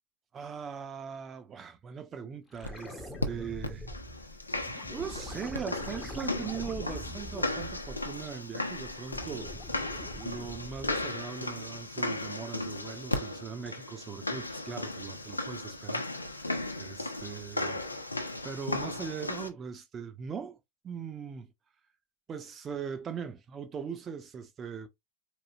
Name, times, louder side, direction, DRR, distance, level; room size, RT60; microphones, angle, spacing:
voice 1, 0.3-3.9 4.9-9.5 10.1-17.8 18.4-20.6 20.8-21.5 22.3-24.9, right 6 dB, 25° right, 0.9 m, -40 dB
sound 1, 2.5-8.3 8.7-11.2 13.6-13.7, left 1 dB, 5° left, 0.9 m, -44 dB
sound 2, 2.6-2.7 3.2-3.3 3.6-19.5, left 2 dB, 85° left, 0.8 m, -36 dB
4.6 x 3.2 x 2.9 m
figure-of-eight pair, 90°, 0 cm